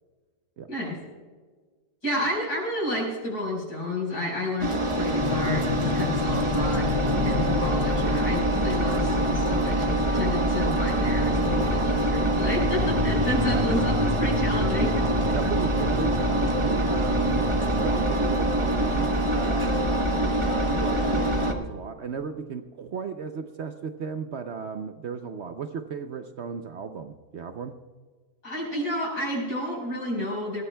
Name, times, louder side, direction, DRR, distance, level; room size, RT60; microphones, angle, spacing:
voice 1, 2.0-6.9 7.2-15.1 28.4-30.6, equal, 60° left, -4 dB, 5.2 m, -30 dB
Engine, 4.6-21.5, right 1 dB, 25° right, 0.8 m, -24 dB
sound 1, 5.2-18.0, left 9 dB, 90° left, 1.2 m, -34 dB
voice 2, 15.3-19.8 20.4-27.7, right 6 dB, 65° right, 7 dB, 0.6 m, -35 dB
21.0 x 16.0 x 2.3 m, 1.4 s
omnidirectional pair, 1.8 m